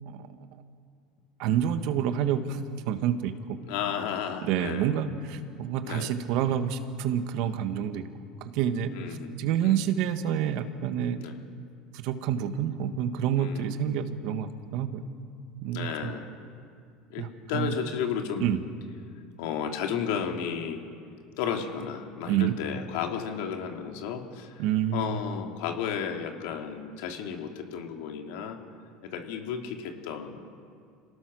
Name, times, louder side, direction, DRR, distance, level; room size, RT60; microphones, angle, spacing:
voice 1, 1.4-3.6 4.4-8.0 8.4-8.9 9.4-11.2 11.9-15.0 15.6-16.1 17.2-17.7 18.4-18.6 22.3-22.5 24.6-25.2, right 9 dB, 65° right, 9 dB, 1.5 m, -28 dB
voice 2, 3.7-5.0 5.8-6.1 8.9-9.9 11.2-11.4 13.4-13.8 15.7-16.3 17.1-18.5 19.4-20.8 21.4-24.6 24.9-28.6 29.0-30.4, left 7 dB, 75° left, 4 dB, 2.6 m, -33 dB
27.0 x 18.5 x 6.4 m, 2.3 s
supercardioid pair, 95°, 0 cm